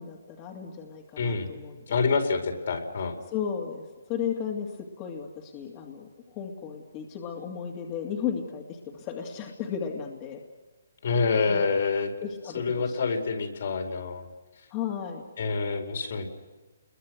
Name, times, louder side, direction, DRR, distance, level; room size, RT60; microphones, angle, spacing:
voice 1, 0.0-2.0 3.3-4.7 5.0-10.4 11.5-11.6 12.2-13.1 14.7-15.2, left 7 dB, 25° left, 1 dB, 2.5 m, -35 dB
voice 2, 1.2-1.5 1.9-3.1 11.0-12.1 12.5-14.3 15.4-16.3, left 4 dB, 65° left, 4 dB, 4.7 m, -27 dB
30.0 x 22.0 x 6.4 m, 1.3 s
hypercardioid pair, 155°, 0 cm